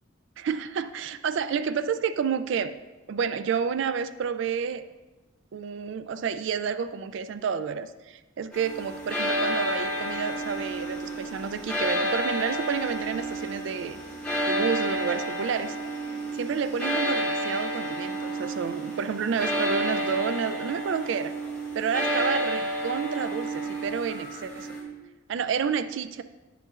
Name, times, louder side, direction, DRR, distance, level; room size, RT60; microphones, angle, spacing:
voice 1, 0.4-2.7 3.1-4.8 5.5-14.0 14.5-15.8 16.4-21.3 21.7-24.7 25.3-26.2, right 6 dB, 60° right, 12 dB, 0.3 m, -30 dB
sound 1, 8.5-24.8, right 1 dB, 5° left, 2.2 m, -30 dB
10.5 x 6.7 x 2.5 m, 1.2 s
head